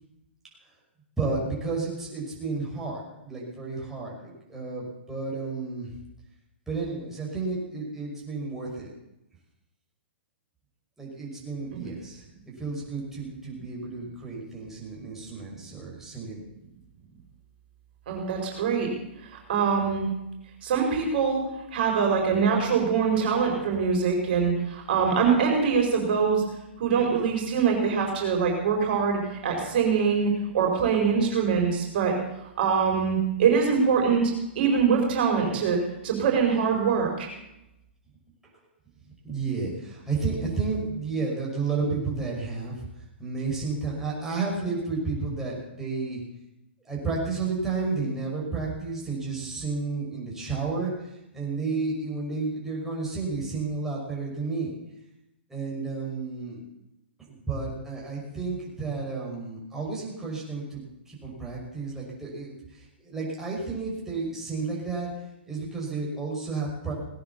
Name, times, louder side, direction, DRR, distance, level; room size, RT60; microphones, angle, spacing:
voice 1, 1.2-5.9 6.7-8.9 11.0-12.2 12.6-16.4 39.2-42.9 43.2-46.2 46.8-54.7 55.5-56.6 57.3-65.1 65.5-66.9, right 4 dB, 5° right, -5 dB, 6.1 m, -32 dB
voice 2, 18.1-18.9 19.5-20.1 20.6-21.4 21.7-26.4 26.8-32.1 32.6-35.8 36.0-37.3, right 6 dB, 55° right, 2 dB, 5.1 m, -23 dB
18.5 x 9.6 x 7.2 m, 0.89 s
hypercardioid pair, 130°, 6 cm